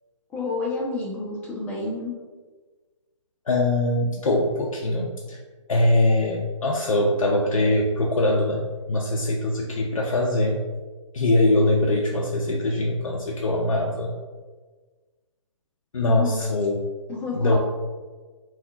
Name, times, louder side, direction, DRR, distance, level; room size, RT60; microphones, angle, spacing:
voice 1, 0.3-2.1 16.0-16.4 17.1-17.6, left 3 dB, 10° left, -4 dB, 0.5 m, -29 dB
voice 2, 3.5-5.4 5.7-8.6 8.9-10.7 11.1-14.1 15.9-16.8 17.3-17.6, left 1 dB, 85° left, -1 dB, 0.4 m, -22 dB
3.5 x 2.3 x 2.3 m, 1.4 s
figure-of-eight pair, 140°, 17 cm